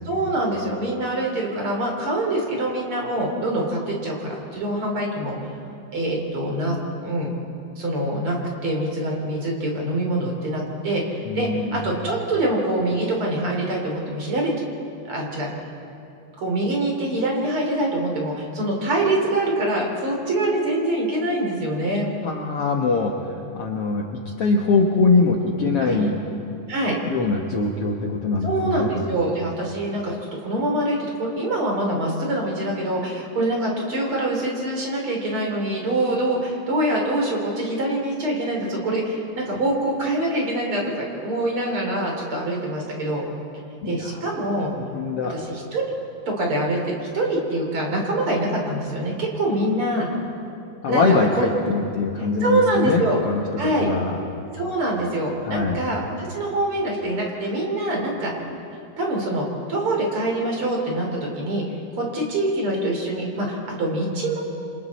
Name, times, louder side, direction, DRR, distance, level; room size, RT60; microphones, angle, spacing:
voice 1, 0.1-5.3 5.9-6.8 7.0-7.3 7.8-8.4 8.6-14.5 15.1-15.5 16.4-22.1 25.8-25.9 26.7-27.0 28.4-30.2 30.4-43.2 43.9-44.7 45.3-45.8 46.3-50.1 50.9-51.4 52.4-53.2 53.6-53.9 54.5-58.3 59.0-64.4, right 1 dB, 40° right, 0 dB, 3.9 m, -24 dB
voice 2, 11.3-11.8 22.2-26.2 27.1-29.0 43.8-44.3 44.9-45.3 50.8-53.4 53.8-54.2 55.4-55.8, left 3 dB, 55° left, 0 dB, 1.8 m, -22 dB
27.5 x 26.5 x 4.2 m, 2.6 s
omnidirectional pair, 3.8 m